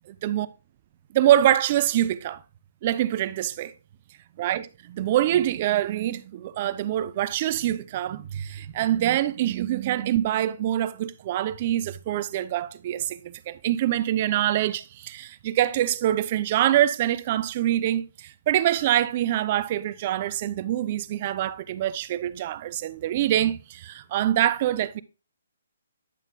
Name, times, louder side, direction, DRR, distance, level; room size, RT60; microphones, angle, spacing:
voice 1, 1.1-2.4 2.8-3.7 4.4-25.0, right 12 dB, 35° right, 0.4 m, -25 dB
9.8 x 7.1 x 2.2 m
hypercardioid pair, 155°, 0 cm